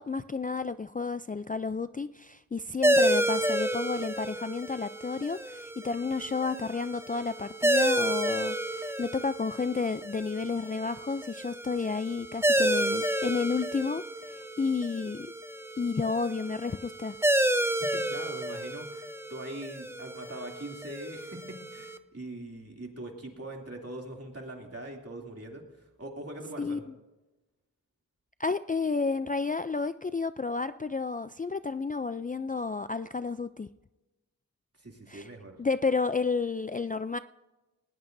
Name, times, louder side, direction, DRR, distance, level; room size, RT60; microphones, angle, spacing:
voice 1, 0.0-15.3 15.8-17.2 26.6-26.8 28.4-33.7 35.1-35.3 35.6-37.2, left 4 dB, 25° left, 12 dB, 0.4 m, -31 dB
sound 1, 2.8-22.0, right 1 dB, 5° right, 0.7 m, -30 dB
voice 2, 17.9-26.8 34.8-35.6, right 1 dB, 40° right, 0 dB, 2.8 m, -42 dB
19.5 x 17.5 x 2.7 m, 1.1 s
wide cardioid pair, 50°, 37 cm